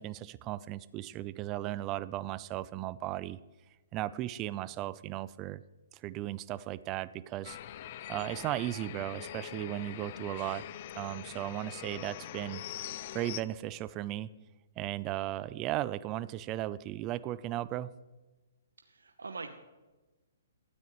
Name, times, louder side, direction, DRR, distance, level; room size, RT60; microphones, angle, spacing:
voice 1, 0.0-3.4 3.9-5.6 5.9-7.6 8.1-10.7 10.9-12.6 13.1-14.3 14.8-17.9, right 14 dB, 30° right, 18 dB, 0.5 m, -36 dB
sound 1, 7.4-13.4, left 12 dB, 45° left, 0.6 m, -43 dB
voice 2, 18.8-19.5, right 4 dB, 80° right, 6 dB, 0.9 m, -43 dB
18.5 x 13.0 x 3.1 m, 1.2 s
figure-of-eight pair, 125°, 0 cm